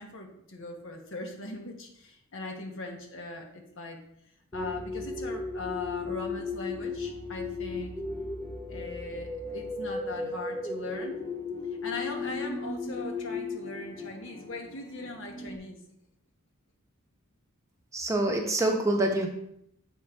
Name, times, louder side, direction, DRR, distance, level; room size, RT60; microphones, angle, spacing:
voice 1, 0.0-4.0 4.5-8.0 8.7-11.2 11.8-15.8, left 2 dB, 65° left, 2 dB, 1.2 m, -39 dB
sound 1, 4.5-15.6, left 3 dB, 15° left, 0.6 m, -36 dB
voice 2, 17.9-19.3, right 1 dB, 15° right, 2 dB, 0.8 m, -26 dB
7.7 x 3.8 x 4.4 m, 0.75 s
head